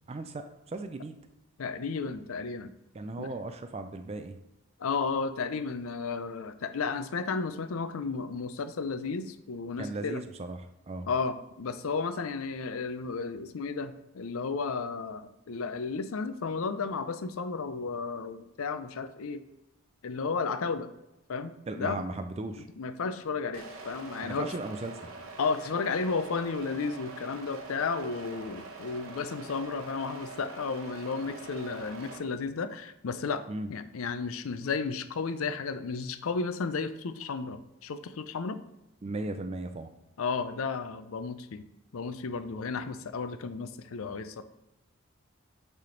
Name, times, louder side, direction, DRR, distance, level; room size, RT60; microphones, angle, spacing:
voice 1, 0.1-1.2 2.9-4.3 9.8-10.6 10.9-11.1 21.7-22.7 24.2-25.1 33.5-33.7 39.0-39.9, right 2 dB, 30° right, 7 dB, 0.4 m, -36 dB
voice 2, 1.6-2.7 3.2-3.3 4.8-10.2 11.1-19.4 20.0-20.9 21.3-22.1 22.8-24.5 25.4-33.4 33.7-38.6 40.2-41.7 41.9-44.4, left 4 dB, 70° left, 11 dB, 0.5 m, -33 dB
sound 1, 23.5-32.2, right 3 dB, 70° right, 1.0 m, -44 dB
8.3 x 3.5 x 3.8 m, 0.93 s
head